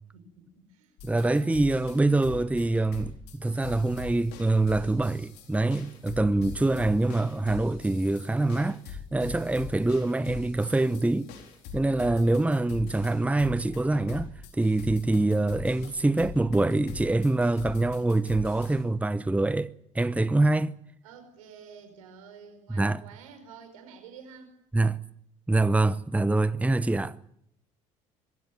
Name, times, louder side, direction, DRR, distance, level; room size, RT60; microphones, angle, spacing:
voice 1, 0.1-1.5 2.0-2.4 3.5-3.9 11.9-13.1 21.0-24.5, right 5 dB, 85° right, 5.0 m, -49 dB
sound 1, 1.0-18.8, left 5 dB, 70° left, 4.3 m, -43 dB
voice 2, 1.0-11.3 11.7-19.7 19.9-20.7 22.7-23.0 24.7-25.0 25.5-27.2, right 2 dB, 10° right, 0.8 m, -25 dB
22.0 x 15.5 x 9.1 m
hypercardioid pair, 65°, 17 cm